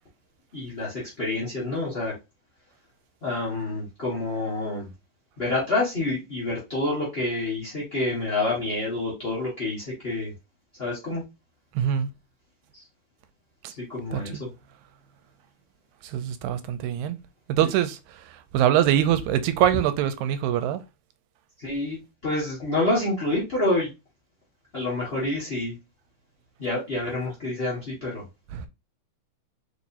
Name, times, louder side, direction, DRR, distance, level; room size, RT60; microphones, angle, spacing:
voice 1, 0.5-2.1 3.2-4.9 5.4-10.3 10.8-11.2 12.7-12.8 13.9-14.5 17.6-17.7 21.6-23.9 24.7-25.8 26.6-28.2, left 2 dB, 40° left, 0.8 m, -28 dB
voice 2, 11.8-12.1 14.1-14.2 16.0-17.2 17.5-20.8 28.5-28.7, right 11 dB, 80° right, 1.9 m, -24 dB
4.6 x 4.2 x 2.5 m
omnidirectional pair, 3.5 m